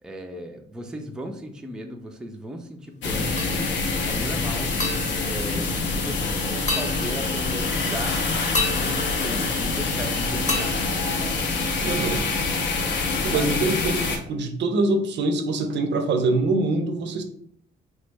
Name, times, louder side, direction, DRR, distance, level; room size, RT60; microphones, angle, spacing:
voice 1, 0.0-3.5 4.0-4.8 5.3-8.2 8.7-10.8 11.1-11.4 13.3-13.7, equal, 5° right, 3 dB, 0.3 m, -36 dB
sound 1, 3.0-14.2, left 3 dB, 65° left, 0.5 m, -26 dB
sound 2, 3.4-4.0 4.8-6.2 6.7-7.7 8.5-10.0 10.5-11.9, left 2 dB, 35° left, 0.8 m, -32 dB
voice 2, 11.8-12.2 13.2-17.2, right 2 dB, 65° right, 7 dB, 0.5 m, -24 dB
3.1 x 2.0 x 3.3 m, 0.66 s
cardioid pair, 90°, 20 cm